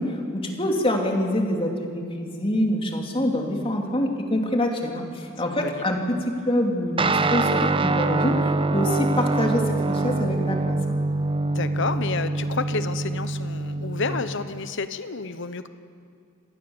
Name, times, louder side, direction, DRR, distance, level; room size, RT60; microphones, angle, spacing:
voice 1, 0.0-6.2 6.4-8.4 8.7-10.8, left 1 dB, 25° left, 2 dB, 2.8 m, -25 dB
voice 2, 5.5-5.8 8.8-9.0 11.5-15.7, left 4 dB, 65° left, 11 dB, 1.1 m, -30 dB
Guitar, 7.0-14.7, right 3 dB, 25° right, 0.7 m, -25 dB
26.0 x 18.5 x 7.2 m, 2.3 s
head